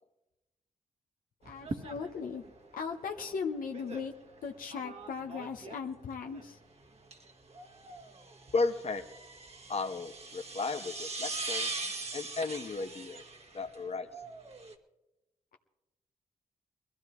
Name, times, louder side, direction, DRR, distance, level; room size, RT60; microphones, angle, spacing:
voice 1, 1.4-2.4 2.7-4.1 4.4-6.6, left 5 dB, 80° left, 3 dB, 0.9 m, -38 dB
sound 1, 1.4-14.7, right 3 dB, 45° right, 1.5 m, -42 dB
voice 2, 8.5-9.0 9.7-11.7 12.1-13.2 13.5-14.1, left 3 dB, 45° left, 7 dB, 1.1 m, -34 dB
21.0 x 14.5 x 3.1 m, 1.0 s
supercardioid pair, 45°, 14 cm